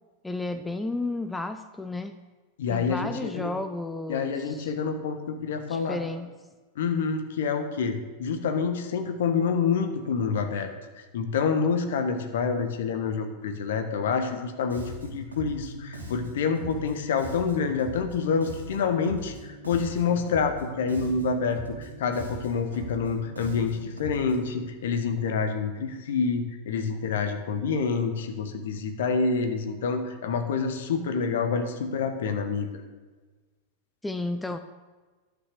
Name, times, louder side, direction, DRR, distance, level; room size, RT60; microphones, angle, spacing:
voice 1, 0.2-2.2 2.7-4.7 5.7-6.3 34.0-34.6, left 2 dB, 5° left, 9 dB, 0.5 m, -32 dB
voice 2, 2.6-3.5 4.1-6.0 6.7-10.7 11.1-32.7, left 5 dB, 60° left, 7 dB, 1.3 m, -27 dB
Bass guitar, 14.7-24.6, right 1 dB, 75° right, 3.0 m, -40 dB
11.5 x 6.3 x 6.9 m, 1.3 s
figure-of-eight pair, 90°, 0 cm